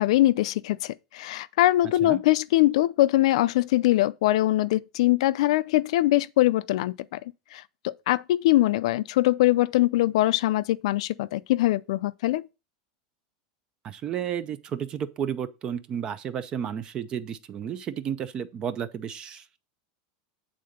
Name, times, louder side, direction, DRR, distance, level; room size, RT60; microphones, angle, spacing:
voice 1, 0.0-7.2 7.5-12.4, left 16 dB, 70° left, 0.4 m, -22 dB
voice 2, 13.8-19.6, right 8 dB, 25° right, 0.5 m, -32 dB
8.7 x 3.8 x 6.5 m
supercardioid pair, 170°, 3 cm